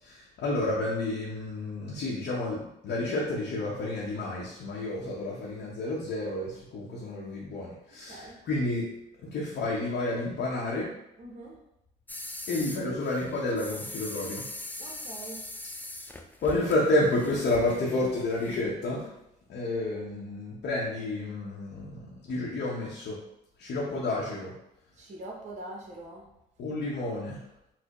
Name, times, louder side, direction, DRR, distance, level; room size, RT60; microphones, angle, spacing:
voice 1, 0.0-8.9 9.2-10.9 12.5-14.5 16.4-19.1 19.5-23.2 23.6-24.5 26.6-27.4, left 2 dB, 55° left, -4 dB, 0.8 m, -30 dB
voice 2, 11.2-11.6 14.8-15.4 24.9-26.3, right 2 dB, 35° right, -2 dB, 0.8 m, -43 dB
sound 1, 12.1-18.6, left 2 dB, 10° left, 0.4 m, -42 dB
4.1 x 2.1 x 2.9 m, 0.84 s
hypercardioid pair, 60°, 20 cm